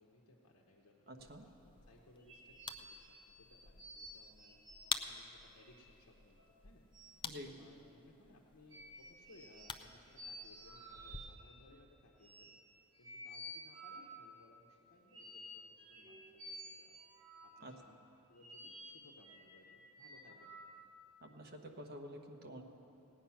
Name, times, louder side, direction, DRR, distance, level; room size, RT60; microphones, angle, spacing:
voice 1, 0.0-4.5 5.0-6.9 7.5-17.0 17.4-18.0 18.3-20.8, left 2 dB, 90° left, -1 dB, 1.0 m, -64 dB
voice 2, 1.1-1.4 7.2-7.6 17.6-17.7 21.2-22.6, equal, 45° right, 3 dB, 1.1 m, -49 dB
sound 1, 1.2-11.2, left 6 dB, 25° left, 0.4 m, -49 dB
sound 2, 2.2-5.0 5.4-5.9 6.4-6.5 6.9-7.2 8.7-9.8 10.1-11.5 12.2-12.6 12.9-14.2 15.1-17.7 18.4-19.5 20.0-20.7, equal, 20° right, 3.3 m, -53 dB
17.5 x 9.1 x 5.8 m, 3.0 s
head